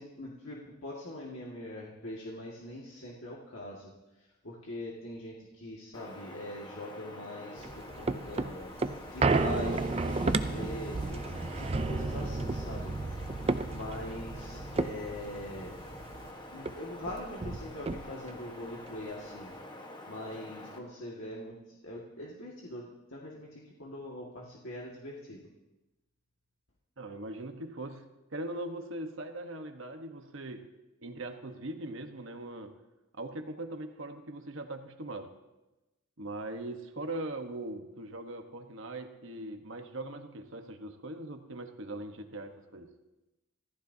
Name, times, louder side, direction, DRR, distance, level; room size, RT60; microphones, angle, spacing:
voice 1, 0.0-8.7 9.1-11.2 11.6-12.9 13.7-15.7 16.5-19.6 20.1-25.4, left 1 dB, 60° left, -4 dB, 2.0 m, -42 dB
Wind, 5.9-20.8, left 1 dB, 20° left, 1.3 m, -46 dB
sound 1, 7.6-16.3 16.6-16.7 17.0-18.4 18.9-19.0, right 3 dB, 25° right, 0.5 m, -32 dB
voice 2, 27.0-30.7 31.0-32.7 33.2-35.3 36.2-42.9, right 1 dB, 60° right, 5 dB, 1.2 m, -40 dB
26.5 x 14.5 x 2.8 m, 1.0 s
head